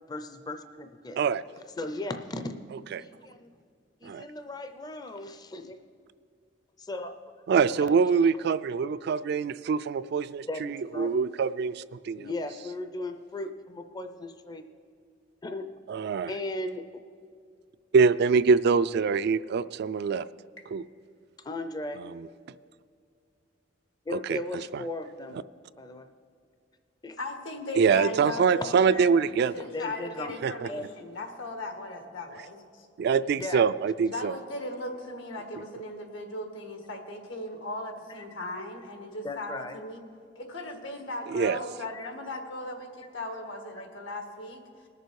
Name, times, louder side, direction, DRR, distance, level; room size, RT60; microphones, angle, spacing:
voice 1, 0.1-1.2 1.8-2.5 3.0-3.5 4.0-5.8 6.8-7.2 7.7-8.1 10.5-11.1 12.2-14.6 15.4-15.7 16.3-16.8 21.4-22.0 24.1-25.4 25.8-26.1 27.0-27.2 28.3-28.8 29.6-30.3 30.7-30.9 33.4-33.7 38.2-38.3 39.2-39.8 41.9-42.1, left 2 dB, 20° left, 8 dB, 0.5 m, -37 dB
voice 2, 7.5-12.3 15.9-16.3 17.9-20.2 20.7-20.8 24.1-24.4 27.8-29.5 30.4-30.5 33.0-34.3 41.3-41.6, right 5 dB, 55° right, 15 dB, 0.3 m, -24 dB
voice 3, 27.2-29.1 29.5-32.9 34.1-40.0 40.3-44.6, left 2 dB, 80° left, 5 dB, 1.6 m, -38 dB
20.0 x 6.8 x 4.7 m, 2.3 s
head